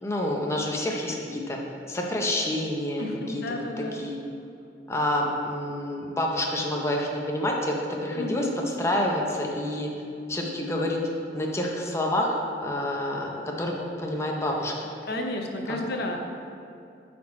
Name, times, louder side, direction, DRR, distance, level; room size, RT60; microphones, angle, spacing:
voice 1, 0.0-1.6 1.9-4.2 4.9-9.9 10.3-11.0 11.3-14.7 15.7-15.8, left 1 dB, 15° left, 0 dB, 0.6 m, -28 dB
voice 2, 3.0-4.0 8.2-8.5 15.1-16.2, left 1 dB, 60° left, 3 dB, 0.6 m, -32 dB
8.5 x 4.3 x 4.2 m, 2.6 s
head